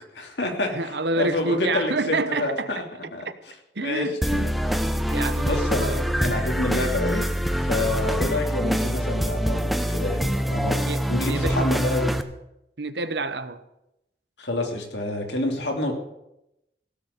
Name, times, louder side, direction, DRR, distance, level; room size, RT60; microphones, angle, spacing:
voice 1, 0.1-2.8 3.1-3.3 3.8-4.1 4.4-4.5 5.1-7.2 7.7-10.8 11.1-12.1 14.4-15.9, left 2 dB, 80° left, 2 dB, 3.0 m, -28 dB
voice 2, 0.7-2.8 3.2-3.3 3.7-6.1 10.8-11.7 12.8-13.6, right 2 dB, 75° right, 12 dB, 1.0 m, -29 dB
sound 1, 4.2-12.2, equal, ahead, 0.7 m, -25 dB
16.5 x 6.9 x 8.8 m, 0.86 s
head